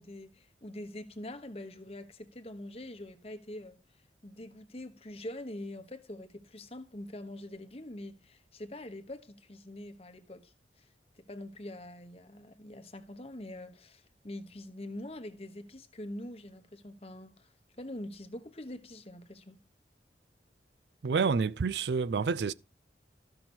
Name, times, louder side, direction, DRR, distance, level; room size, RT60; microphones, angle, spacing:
voice 1, 0.0-3.8 4.2-10.9 11.1-19.6, left 1 dB, 35° left, 1.1 m, -44 dB
voice 2, 21.0-22.5, right 5 dB, 75° right, 0.4 m, -28 dB
14.0 x 6.0 x 4.3 m
head